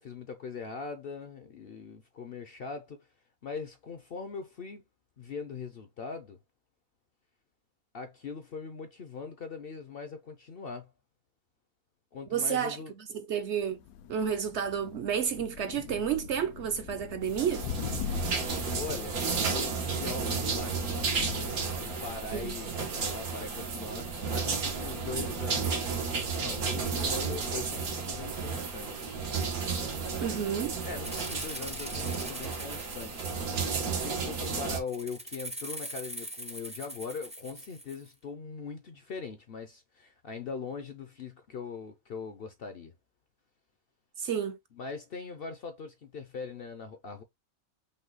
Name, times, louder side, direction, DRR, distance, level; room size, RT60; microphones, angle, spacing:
voice 1, 0.0-3.1 3.4-4.8 5.2-6.4 7.9-10.9 12.1-12.9 18.7-21.2 21.6-26.0 26.4-29.1 30.8-33.3 33.9-42.9 44.7-47.2, left 5 dB, 55° left, 0.7 m, -41 dB
voice 2, 12.3-12.8 13.1-13.8 14.1-17.7 22.3-22.6 30.2-30.8 44.2-44.6, right 8 dB, 60° right, 0.8 m, -30 dB
Thunder, 13.6-28.2, left 8 dB, 80° left, 1.1 m, -43 dB
sound 1, 17.3-34.8, right 5 dB, 90° right, 1.7 m, -33 dB
Rattle (instrument), 31.0-33.9 34.9-38.1, right 1 dB, 10° right, 0.4 m, -42 dB
5.4 x 2.3 x 3.9 m
omnidirectional pair, 1.5 m